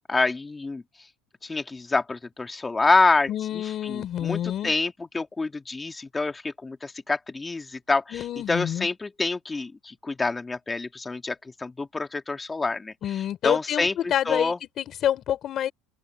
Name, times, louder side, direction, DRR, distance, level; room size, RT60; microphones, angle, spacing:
voice 1, 0.1-0.8 1.4-12.9 13.4-14.6, left 3 dB, 15° left, 2.3 m, -27 dB
voice 2, 3.3-4.7 8.1-8.9 13.0-15.7, left 11 dB, 40° left, 4.2 m, -28 dB
open air
supercardioid pair, 135°, 0 cm